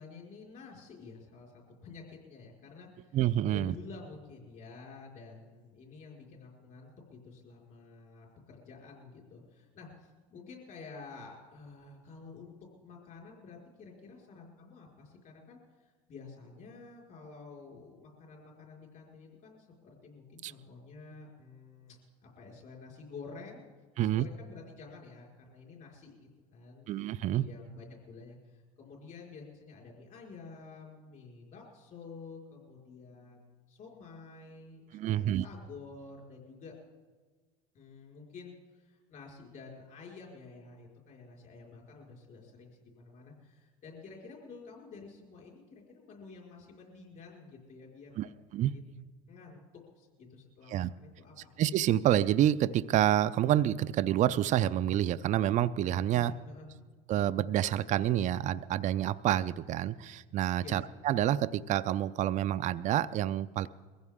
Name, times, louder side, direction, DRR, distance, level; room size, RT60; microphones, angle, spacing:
voice 1, 0.0-3.2 3.5-12.5 12.8-23.7 24.0-36.7 37.7-48.3 48.7-49.6 50.0-51.5 56.1-56.7 60.6-60.8, left 4 dB, 45° left, -1 dB, 4.9 m, -50 dB
voice 2, 3.1-3.7 20.4-20.5 24.0-24.2 26.9-27.5 34.9-35.4 48.2-48.3 48.5-48.7 50.7-50.9 51.6-56.3 57.1-63.7, right 12 dB, 45° right, 13 dB, 0.5 m, -28 dB
22.0 x 15.5 x 3.6 m, 1.4 s
supercardioid pair, 95°, 18 cm